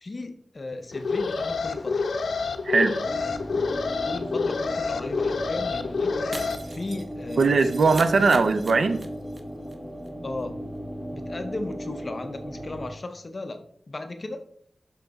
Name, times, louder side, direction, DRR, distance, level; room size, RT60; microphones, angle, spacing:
voice 1, 0.0-2.1 4.0-6.2 6.7-7.6 8.3-8.4 10.2-10.6 11.1-14.4, left 2 dB, 35° left, 0.5 m, -36 dB
Alarm, 0.9-6.6, left 4 dB, 80° left, 0.5 m, -28 dB
voice 2, 2.6-3.0 7.4-9.1, right 4 dB, 70° right, 0.5 m, -20 dB
sound 1, 3.0-12.9, equal, 10° right, 0.7 m, -37 dB
Shatter, 6.3-9.4 9.6-9.7 10.1-10.2, right 2 dB, 40° right, 0.8 m, -41 dB
5.9 x 5.7 x 3.9 m
wide cardioid pair, 135°, 0 cm